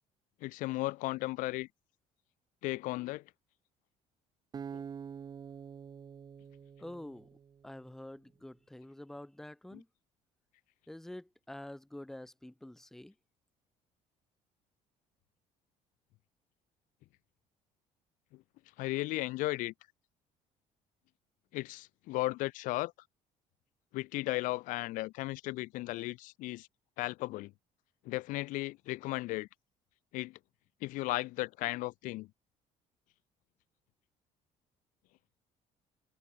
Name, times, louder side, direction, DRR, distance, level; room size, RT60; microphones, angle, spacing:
voice 1, 0.4-1.7 2.6-3.2 4.7-4.8 18.8-19.7 21.5-22.9 23.9-26.7 27.0-27.5 28.1-29.5 30.1-30.4 30.8-32.3, left 20 dB, 75° left, 0.5 m, -35 dB
Acoustic guitar, 4.5-7.8, right 7 dB, 30° right, 1.2 m, -46 dB
voice 2, 6.8-7.3 7.6-9.9 10.9-13.1, left 1 dB, 5° left, 0.5 m, -47 dB
cardioid pair, 145°, 14 cm